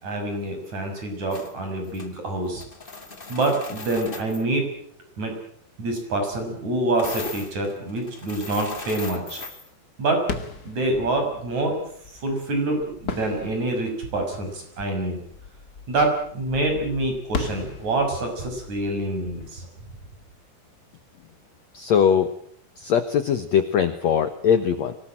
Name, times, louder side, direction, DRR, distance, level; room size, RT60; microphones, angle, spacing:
voice 1, 0.0-2.6 3.3-4.7 5.2-5.3 5.8-9.4 10.0-10.3 10.6-11.8 12.2-15.2 15.9-19.7, right 2 dB, 40° right, 4 dB, 7.6 m, -26 dB
sound 1, 1.3-1.5 1.8-2.1 2.4-4.4 7.0-9.7, left 3 dB, 50° left, 0.6 m, -38 dB
sound 2, 10.2-20.8, left 4 dB, 35° left, 1.6 m, -38 dB
voice 2, 21.7-22.3 22.8-24.9, left 8 dB, 75° left, 10 dB, 1.6 m, -21 dB
25.0 x 19.0 x 8.9 m, 0.63 s
omnidirectional pair, 5.0 m